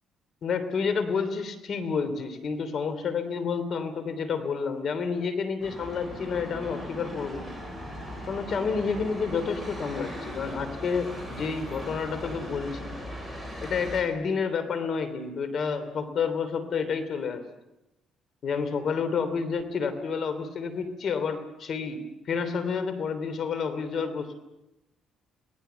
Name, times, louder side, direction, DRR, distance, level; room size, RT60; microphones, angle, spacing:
voice 1, 0.4-7.5 8.3-12.9 13.6-17.4 18.4-24.3, left 5 dB, 55° left, 11 dB, 3.0 m, -29 dB
sound 1, 5.6-14.0, equal, 15° left, 7.3 m, -39 dB
27.5 x 19.5 x 6.9 m, 0.92 s
cardioid pair, 100°, 0 cm